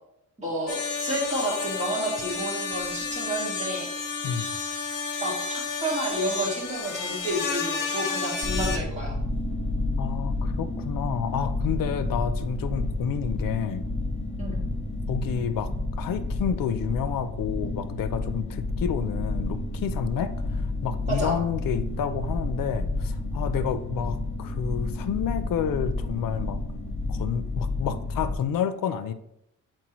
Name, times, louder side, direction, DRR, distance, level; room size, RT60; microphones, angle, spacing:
voice 1, 0.4-3.9 5.2-9.2 14.4-14.6 21.1-21.4, right 1 dB, 20° right, -4 dB, 1.8 m, -30 dB
sound 1, 0.7-8.8, left 5 dB, 65° left, 0.9 m, -31 dB
sound 2, 8.4-28.3, left 2 dB, 20° left, 1.2 m, -30 dB
voice 2, 10.0-13.9 15.1-15.7 16.0-26.6 27.1-29.1, left 8 dB, 90° left, 11 dB, 0.5 m, -30 dB
7.7 x 4.4 x 3.0 m, 0.78 s
wide cardioid pair, 140°, 33 cm